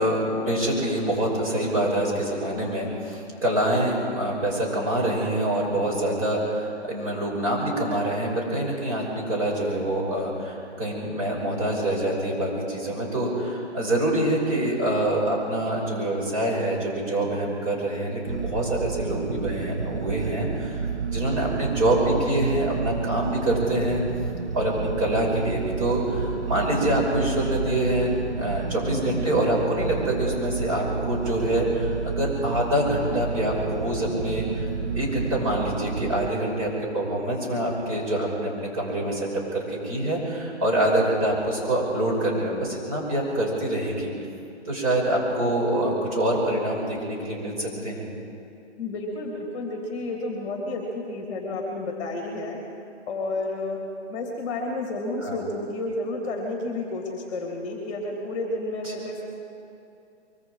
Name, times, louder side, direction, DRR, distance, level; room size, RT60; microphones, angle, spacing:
voice 1, 0.0-20.9 21.1-24.0 24.5-34.7 35.0-44.1 44.7-48.1 55.2-55.4 58.8-58.9, right 1 dB, 30° right, -3 dB, 5.9 m, -25 dB
sound 1, 18.3-36.3, right 5 dB, 75° right, 1.3 m, -30 dB
voice 2, 48.8-52.6 53.1-53.8 54.1-59.2, left 2 dB, 25° left, 0 dB, 3.1 m, -31 dB
24.5 x 23.5 x 5.0 m, 2.7 s
hypercardioid pair, 160°, 35 cm